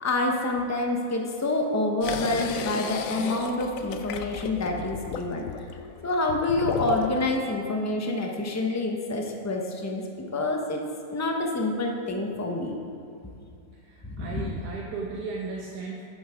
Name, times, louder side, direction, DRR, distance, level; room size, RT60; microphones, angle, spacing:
voice 1, 0.0-5.4 6.0-10.0 10.3-10.8 11.1-12.8 14.0-14.5, left 2 dB, 15° left, 1 dB, 0.6 m, -27 dB
sound 1, 2.0-7.4, left 7 dB, 70° left, 0.9 m, -34 dB
voice 2, 13.7-16.0, right 4 dB, 80° right, -1 dB, 1.4 m, -36 dB
7.9 x 7.5 x 5.0 m, 2.6 s
omnidirectional pair, 1.7 m